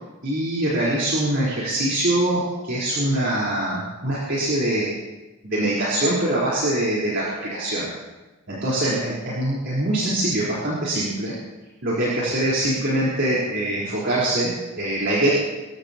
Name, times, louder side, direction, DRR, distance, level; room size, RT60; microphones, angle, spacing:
voice 1, 0.2-4.9 5.4-7.9 8.5-11.3 11.8-15.3, right 1 dB, 55° right, -8 dB, 4.3 m, -23 dB
26.5 x 15.0 x 3.0 m, 1.2 s
head